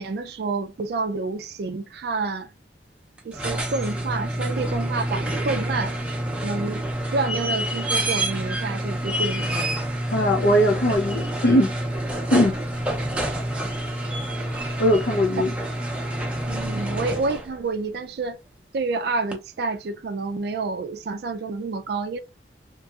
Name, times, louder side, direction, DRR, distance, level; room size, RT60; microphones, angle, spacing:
voice 1, 0.0-2.5 3.2-6.0 6.4-6.9 7.1-9.6 16.5-18.4 18.7-22.2, right 3 dB, 60° right, 0.3 m, -28 dB
sound 1, 3.2-17.6 19.3-19.4, right 1 dB, 5° right, 0.6 m, -27 dB
voice 2, 10.1-11.7 12.3-12.6 14.8-15.5, equal, 60° left, 0.5 m, -20 dB
2.9 x 2.7 x 2.3 m
head